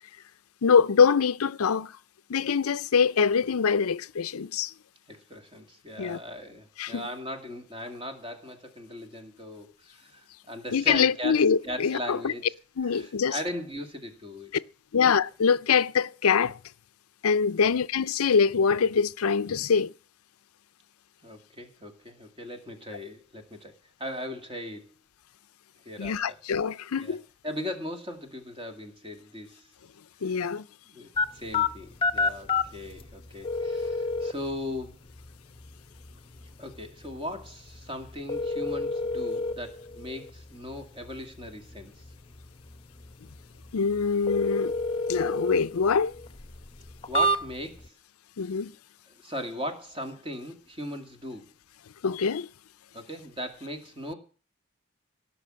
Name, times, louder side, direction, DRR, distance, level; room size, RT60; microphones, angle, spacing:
voice 1, 0.6-1.9 2.3-4.7 6.0-6.2 6.8-7.0 10.7-12.3 12.8-13.4 14.9-16.6 17.2-19.9 26.0-27.2 30.2-30.6 43.7-44.7 45.1-46.1 48.4-48.7 52.0-52.5, left 6 dB, 85° left, 0.5 m, -24 dB
voice 2, 5.1-12.5 12.8-14.5 17.6-17.7 21.2-23.7 24.0-24.9 25.9-26.4 27.0-27.2 27.4-29.7 30.2-30.6 30.9-31.1 31.3-35.0 36.6-42.0 47.1-47.9 49.1-51.5 52.9-54.1, left 1 dB, 25° right, 2.2 m, -38 dB
sound 1, 31.2-47.9, left 2 dB, 25° left, 0.9 m, -32 dB
17.0 x 6.3 x 7.5 m
head